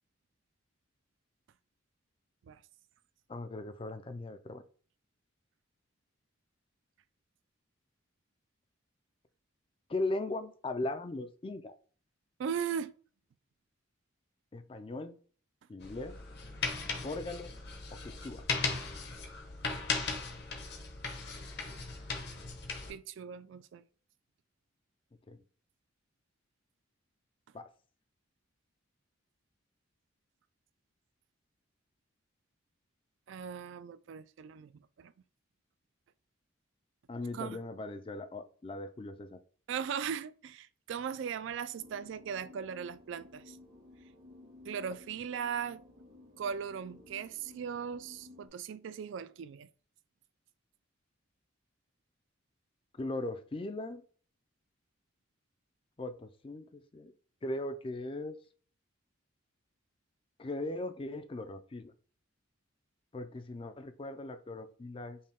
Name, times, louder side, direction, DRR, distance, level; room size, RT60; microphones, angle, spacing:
voice 1, 3.3-4.6 9.9-11.8 14.5-15.2 15.7-16.2 17.0-17.5 17.9-18.5 25.3-25.4 27.5-27.7 37.1-39.4 53.0-54.0 56.0-57.1 57.4-58.4 60.4-61.9 63.1-65.2, left 2 dB, 25° left, 0.3 m, -39 dB
voice 2, 12.4-12.9 22.9-23.8 33.3-34.7 35.0-35.1 37.3-37.6 39.7-43.6 44.7-45.8 46.4-49.7, right 7 dB, 65° right, 0.3 m, -38 dB
sound 1, 15.8-22.9, left 4 dB, 50° left, 0.8 m, -37 dB
sound 2, 41.8-48.5, left 2 dB, 85° right, 1.6 m, -55 dB
5.3 x 2.2 x 3.4 m
head